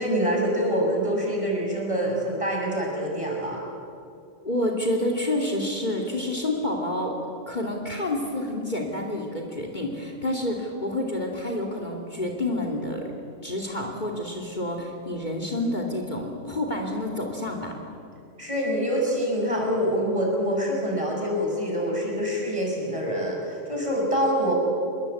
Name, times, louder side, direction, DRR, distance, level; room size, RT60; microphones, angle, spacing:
voice 1, 0.0-3.6 18.4-24.5, equal, 25° right, -1 dB, 6.8 m, -25 dB
voice 2, 4.4-7.2 7.5-13.1 13.4-17.8, left 1 dB, 35° left, 2 dB, 2.9 m, -28 dB
27.5 x 21.5 x 8.5 m, 2.4 s
omnidirectional pair, 1.3 m